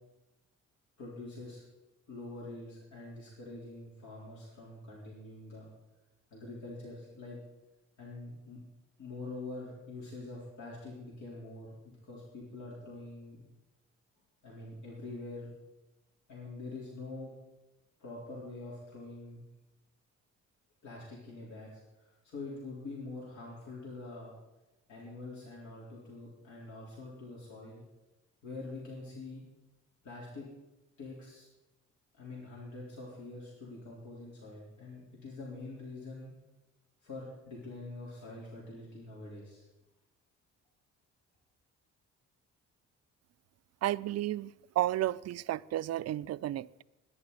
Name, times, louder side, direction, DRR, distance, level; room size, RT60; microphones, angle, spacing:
voice 1, 1.0-1.6 2.1-5.7 6.3-7.4 8.0-8.6 9.0-13.4 14.4-15.5 16.3-17.3 18.0-19.4 20.8-24.3 24.9-27.8 28.4-29.4 30.0-30.5 31.0-31.5 32.1-36.3 37.0-39.6, left 2 dB, 70° left, 4.0 m, -45 dB
voice 2, 43.8-46.8, right 14 dB, 55° right, 0.4 m, -32 dB
21.0 x 10.5 x 4.1 m
cardioid pair, 90°, 30 cm